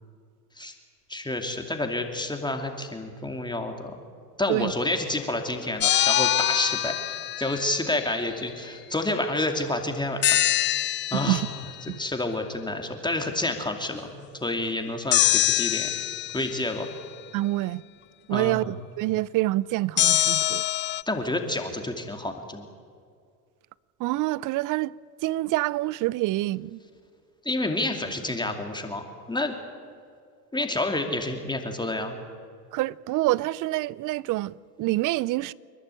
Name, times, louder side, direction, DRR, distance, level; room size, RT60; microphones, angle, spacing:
voice 1, 1.1-4.0 4.4-10.4 10.6-10.7 11.1-11.4 11.8-15.9 16.3-16.9 18.3-18.6 21.1-22.7 27.4-29.5 30.5-32.2, left 2 dB, 10° left, 2.5 m, -29 dB
sound 1, 5.8-7.9 10.2-11.7 15.1-16.8 20.0-21.0, left 13 dB, 25° left, 0.4 m, -24 dB
voice 2, 11.1-11.5 11.9-12.0 17.3-17.8 18.3-20.6 24.0-24.9 25.2-26.8 32.7-35.5, right 17 dB, 40° right, 0.6 m, -26 dB
29.0 x 11.5 x 9.0 m
hypercardioid pair, 90°, 48 cm